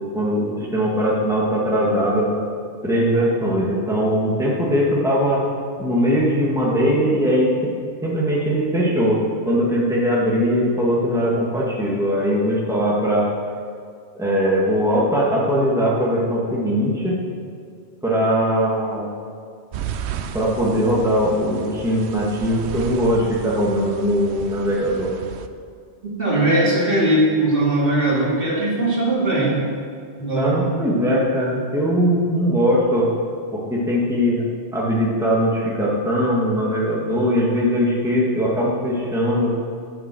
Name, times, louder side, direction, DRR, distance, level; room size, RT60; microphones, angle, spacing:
voice 1, 0.0-2.3 2.8-5.4 5.8-7.7 8.0-13.3 14.2-17.1 18.0-19.1 20.3-25.1 30.3-33.1 33.5-34.4 34.7-39.5, equal, 5° right, -5 dB, 1.8 m, -20 dB
sound 1, 19.7-25.5, right 8 dB, 70° right, 0.8 m, -33 dB
voice 2, 26.0-29.6 30.2-30.5, right 1 dB, 50° right, -5 dB, 2.7 m, -19 dB
8.7 x 7.5 x 7.6 m, 2.1 s
omnidirectional pair, 1.2 m